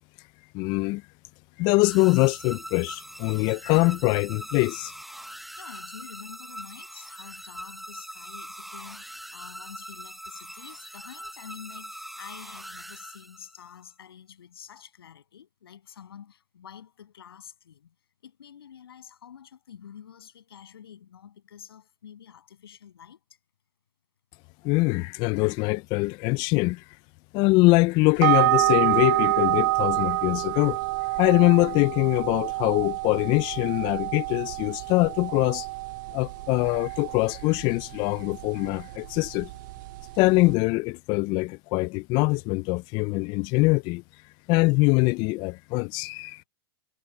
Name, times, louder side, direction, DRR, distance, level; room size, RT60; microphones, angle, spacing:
voice 1, 0.5-1.0 1.6-4.9 24.6-26.8 27.3-30.8 31.2-35.7 36.1-39.5 40.2-44.0 44.5-46.4, left 24 dB, 40° left, 0.3 m, -23 dB
sound 1, 1.8-13.7, equal, ahead, 0.9 m, -42 dB
voice 2, 5.6-17.9 18.2-23.2 34.7-34.9 36.1-36.3, left 9 dB, 90° left, 7.8 m, -48 dB
sound 2, 28.2-40.5, right 21 dB, 55° right, 0.4 m, -28 dB
hypercardioid pair, 130°, 12 cm